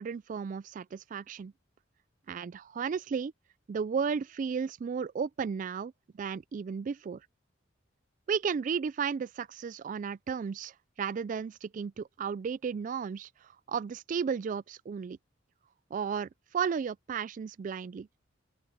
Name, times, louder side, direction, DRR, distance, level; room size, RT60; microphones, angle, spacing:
voice 1, 0.0-1.5 2.3-3.3 3.7-7.2 8.3-10.7 11.0-13.3 13.7-15.2 15.9-18.1, right 6 dB, 40° right, 0.3 m, -34 dB
open air
head